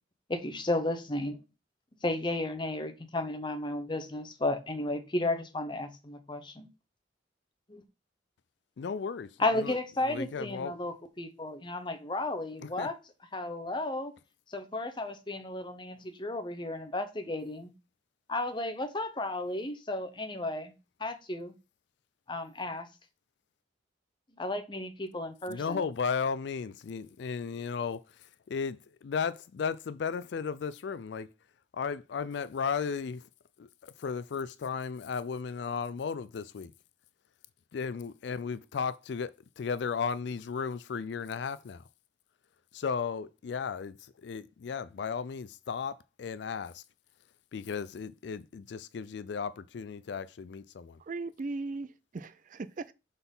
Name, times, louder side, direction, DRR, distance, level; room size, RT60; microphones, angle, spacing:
voice 1, 0.3-1.4 2.0-6.7 7.7-7.8 9.4-12.9 13.3-14.1 14.5-17.7 18.3-20.7 21.0-21.5 22.3-22.9 24.4-25.8, left 2 dB, 25° left, 0.9 m, -33 dB
voice 2, 8.8-9.3 9.5-9.8 10.1-10.8 12.6-12.9 25.5-28.0 28.5-31.3 31.7-33.3 33.6-33.7 34.0-36.7 37.7-41.8 42.7-46.8 47.5-51.0, left 6 dB, 65° left, 0.4 m, -35 dB
voice 3, 51.0-52.9, right 3 dB, 45° right, 0.4 m, -38 dB
5.8 x 4.1 x 5.4 m
head